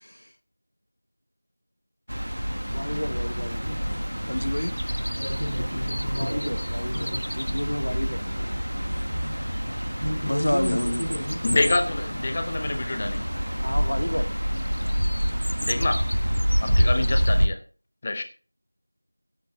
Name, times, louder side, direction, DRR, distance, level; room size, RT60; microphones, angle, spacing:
sound 1, 2.1-17.5, equal, 90° right, 1.4 m, -27 dB
sound 2, 2.3-10.3, equal, 40° right, 5.7 m, -43 dB
voice 1, 2.7-3.7 6.2-8.2 13.6-14.3, equal, 85° left, 2.7 m, -32 dB
voice 2, 4.3-4.7 10.2-11.0, left 1 dB, 40° left, 1.0 m, -27 dB
voice 3, 4.8-6.5 6.9-7.2 10.0-11.4, equal, 10° right, 5.0 m, -33 dB
voice 4, 11.4-13.2 15.6-16.0 16.6-17.6 18.0-18.2, left 2 dB, 10° left, 0.5 m, -26 dB
16.5 x 8.4 x 3.1 m
figure-of-eight pair, 180°, 0 cm